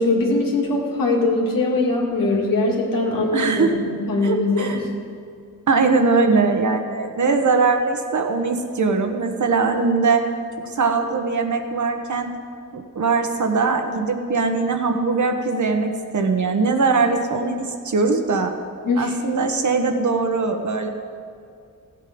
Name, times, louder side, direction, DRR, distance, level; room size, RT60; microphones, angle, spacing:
voice 1, 0.0-4.9 18.9-19.1, left 2 dB, 85° left, -2 dB, 2.3 m, -21 dB
voice 2, 3.3-3.7 4.2-4.8 5.7-10.2 10.7-12.3 12.7-17.6 17.8-18.5 19.0-20.9, right 4 dB, 60° right, 5 dB, 1.3 m, -21 dB
15.0 x 8.3 x 5.3 m, 2.3 s
cardioid pair, 70°, 33 cm